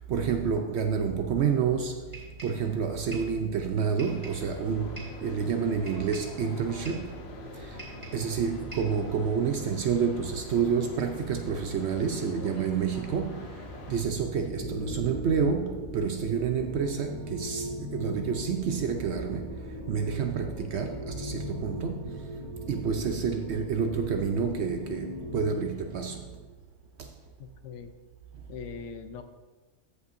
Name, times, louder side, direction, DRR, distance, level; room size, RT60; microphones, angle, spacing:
voice 1, 0.1-2.0 2.4-7.2 7.5-7.9 8.1-13.6 13.9-19.6 19.9-22.2 22.7-26.2 27.0-27.1, right 6 dB, 70° right, 0.8 m, -29 dB
sound 1, 2.1-2.6 3.1-3.4 4.0-4.5 5.0-5.2 5.9-6.4 6.8-7.1 7.8-8.3 8.7-9.0, right 2 dB, 25° right, 2.4 m, -45 dB
sound 2, 4.0-14.0, left 2 dB, 60° left, 1.0 m, -43 dB
sound 3, 14.5-26.4, left 1 dB, 40° right, 1.6 m, -39 dB
voice 2, 27.4-27.9 28.5-29.2, left 6 dB, 80° left, 1.0 m, -41 dB
14.5 x 5.5 x 2.6 m
omnidirectional pair, 1.3 m